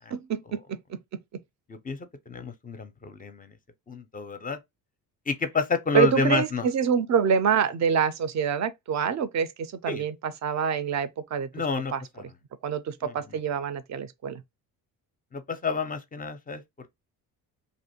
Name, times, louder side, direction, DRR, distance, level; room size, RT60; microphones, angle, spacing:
voice 1, 0.1-0.6 0.9-1.0 5.9-11.5 11.9-12.0 12.6-14.4, right 7 dB, 40° right, 0.4 m, -26 dB
voice 2, 1.7-3.6 3.9-4.6 5.3-6.7 9.9-10.1 11.5-12.2 13.0-13.4 15.3-16.9, left 4 dB, 20° left, 0.5 m, -30 dB
2.5 x 2.1 x 2.8 m
hypercardioid pair, 55°, 46 cm